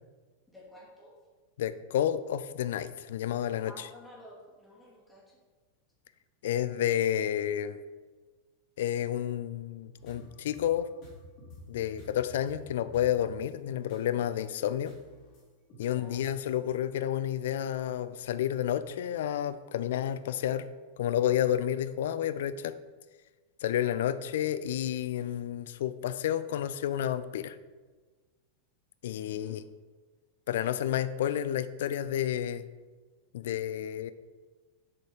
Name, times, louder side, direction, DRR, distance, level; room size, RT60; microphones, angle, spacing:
voice 1, 0.5-1.2 3.6-5.4 13.7-13.9 15.9-16.2 29.2-29.6, left 1 dB, 5° left, -5 dB, 2.4 m, -52 dB
voice 2, 1.6-3.9 6.4-7.8 8.8-10.9 11.7-14.9 15.8-20.7 21.0-22.7 23.6-27.6 29.0-29.6 30.5-32.6 33.3-34.1, left 11 dB, 55° left, 14 dB, 0.4 m, -30 dB
sound 1, 10.0-14.4 14.8-15.4 15.7-16.4, left 1 dB, 40° left, 2.5 m, -50 dB
6.9 x 5.1 x 4.9 m, 1.3 s
figure-of-eight pair, 90°, 0 cm